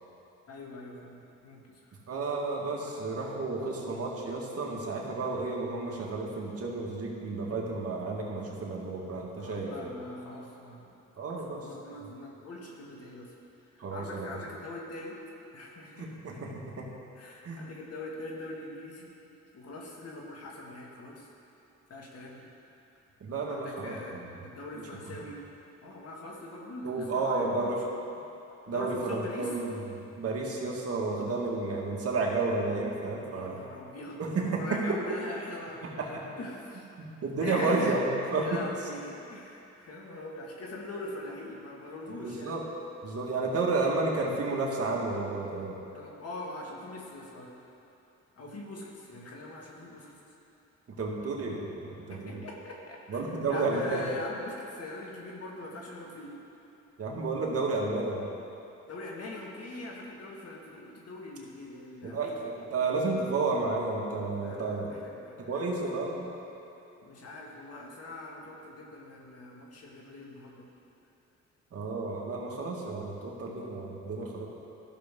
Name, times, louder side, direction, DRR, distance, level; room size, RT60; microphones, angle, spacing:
voice 1, 0.5-1.8 9.4-11.0 11.3-13.3 13.7-15.2 15.5-16.1 16.5-16.6 17.2-19.1 19.5-21.3 21.9-22.7 23.5-24.2 24.4-25.4 25.8-28.0 28.7-29.5 33.3-36.9 37.4-38.0 38.4-42.5 45.9-47.5 48.4-50.1 52.1-56.3 58.9-62.5 64.4-66.1 67.0-70.7, left 2 dB, 55° left, -2 dB, 1.9 m, -42 dB
voice 2, 2.1-9.7 11.2-11.7 13.8-14.4 16.0-16.5 16.8-16.9 17.4-17.6 23.2-24.3 26.8-27.8 28.7-29.8 30.2-33.6 34.2-35.0 36.1-36.2 37.0-38.6 42.2-42.6 43.0-45.8 50.9-52.4 53.1-54.0 57.0-58.3 62.0-64.9 65.4-66.3 71.7-74.5, right 3 dB, 50° right, -2 dB, 1.8 m, -31 dB
14.5 x 6.6 x 3.7 m, 2.8 s
cardioid pair, 90°, 30 cm